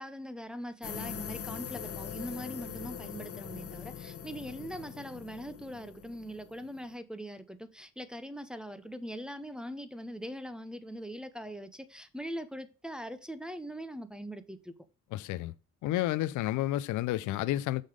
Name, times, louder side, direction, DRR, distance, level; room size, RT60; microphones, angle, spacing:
voice 1, 0.0-14.7, equal, 5° right, 0.6 m, -41 dB
sound 1, 0.8-6.9, left 8 dB, 50° left, 1.0 m, -42 dB
voice 2, 15.1-15.5 15.8-17.8, left 14 dB, 75° left, 0.5 m, -30 dB
6.4 x 3.8 x 4.9 m
cardioid pair, 90°, 30 cm